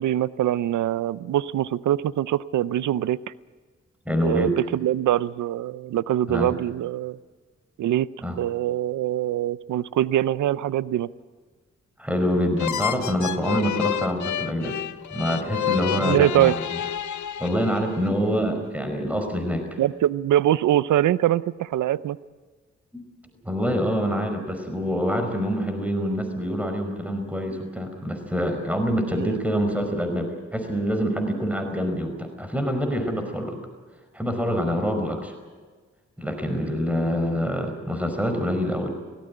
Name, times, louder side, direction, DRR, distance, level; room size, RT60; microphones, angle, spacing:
voice 1, 0.0-3.2 4.2-7.2 7.8-8.1 8.4-11.1 15.9-16.6 19.8-22.2 29.2-29.4, right 12 dB, 90° right, 19 dB, 0.6 m, -23 dB
voice 2, 4.0-4.6 6.3-6.5 8.2-8.4 12.0-14.8 15.1-16.8 17.4-19.8 22.9-23.0 23.4-33.6 34.1-35.3 36.2-38.9, equal, 5° right, 6 dB, 5.1 m, -26 dB
sound 1, 12.6-18.1, left 10 dB, 85° left, 0.7 m, -29 dB
18.0 x 17.5 x 10.0 m, 1.4 s
cardioid pair, 50°, 29 cm